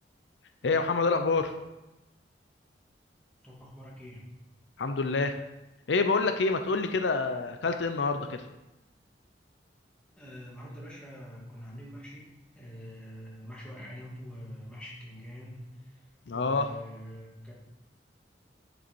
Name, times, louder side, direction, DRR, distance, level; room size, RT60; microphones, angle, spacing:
voice 1, 0.6-1.5 4.8-5.4 5.9-8.4 16.3-16.7, left 4 dB, 90° left, 7 dB, 0.6 m, -27 dB
voice 2, 3.4-4.2 10.2-15.9 16.3-17.5, equal, 5° left, -5 dB, 2.2 m, -45 dB
10.0 x 5.4 x 4.5 m, 0.99 s
head